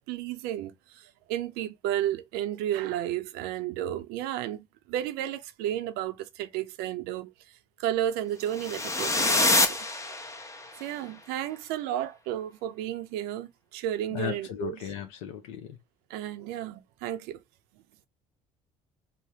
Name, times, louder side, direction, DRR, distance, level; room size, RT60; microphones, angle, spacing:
voice 1, 0.1-7.3 7.8-9.8 10.8-14.8 16.1-17.4, right 12 dB, 75° right, 0.5 m, -32 dB
sound 1, 8.5-10.7, left 2 dB, 20° left, 0.8 m, -26 dB
voice 2, 14.1-15.8, left 10 dB, 85° left, 0.5 m, -36 dB
3.3 x 2.0 x 2.7 m
hypercardioid pair, 65°, 17 cm